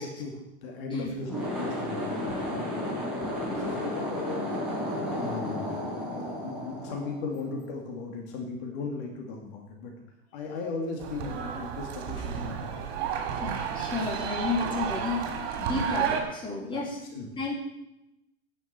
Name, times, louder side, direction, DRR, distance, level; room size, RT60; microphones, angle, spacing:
voice 1, 0.0-2.9 3.5-4.4 5.1-5.7 6.0-10.0 10.3-12.8 16.7-16.8 17.1-17.3, left 3 dB, 55° left, 1 dB, 2.4 m, -37 dB
sound 1, 1.2-7.7, left 1 dB, ahead, 4.5 m, -33 dB
sound 2, 11.0-16.2, right 8 dB, 60° right, 2.8 m, -32 dB
voice 2, 13.4-17.0 17.4-17.6, left 3 dB, 15° left, -3 dB, 3.5 m, -32 dB
10.0 x 7.4 x 8.1 m, 0.87 s
supercardioid pair, 145°, 33 cm